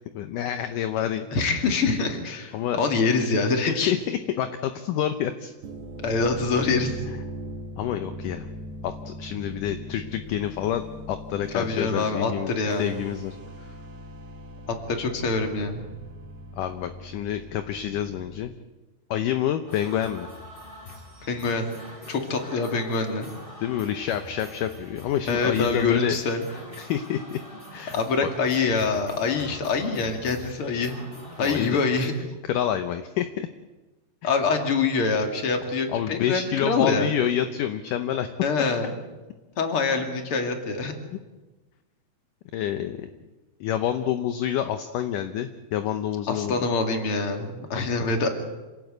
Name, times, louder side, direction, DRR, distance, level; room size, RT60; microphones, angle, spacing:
voice 1, 0.1-1.3 2.5-2.8 3.9-5.5 7.8-8.5 8.8-12.5 12.8-13.4 16.5-18.5 19.1-20.3 23.6-26.2 26.5-27.4 27.7-28.3 31.4-31.8 32.5-33.5 34.2-34.3 35.9-38.3 42.5-43.1 43.6-46.6 47.8-48.1, left 10 dB, 70° left, 8 dB, 2.1 m, -28 dB
voice 2, 1.3-4.0 6.0-7.0 11.5-13.0 14.9-15.9 21.2-21.6 22.1-23.3 25.3-26.4 27.9-31.0 31.4-32.1 34.2-37.1 38.4-38.9 39.6-40.9 46.3-48.3, left 4 dB, 40° left, 4 dB, 2.8 m, -25 dB
sound 1, 5.6-18.4, equal, 75° right, 4.4 m, -40 dB
sound 2, 19.7-32.1, left 1 dB, 15° left, 3.9 m, -44 dB
27.0 x 18.5 x 8.1 m, 1.2 s
omnidirectional pair, 4.6 m